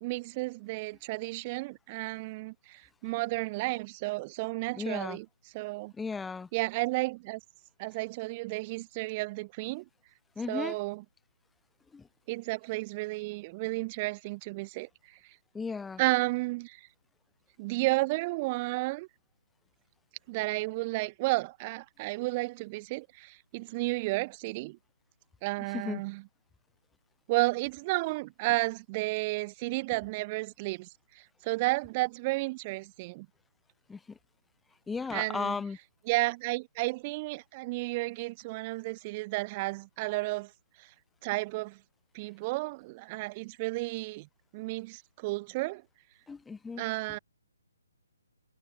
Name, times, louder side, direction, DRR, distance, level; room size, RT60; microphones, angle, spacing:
voice 1, 0.0-5.3 5.5-5.9 6.5-7.4 7.8-9.8 10.5-11.0 12.3-15.2 16.0-16.9 17.6-19.1 20.3-24.8 25.4-26.2 27.3-30.9 31.1-33.3 35.1-35.6 36.1-40.5 40.8-40.9 41.2-41.8 42.1-44.3 44.5-45.8 46.8-47.2, right 23 dB, 30° right, 2.4 m, -32 dB
voice 2, 4.8-5.2 6.0-6.5 10.4-10.8 11.9-12.1 15.5-16.0 25.7-26.0 33.9-34.2 34.9-35.8 46.3-46.8, left 5 dB, 5° left, 1.1 m, -35 dB
figure-of-eight pair, 145°, 0 cm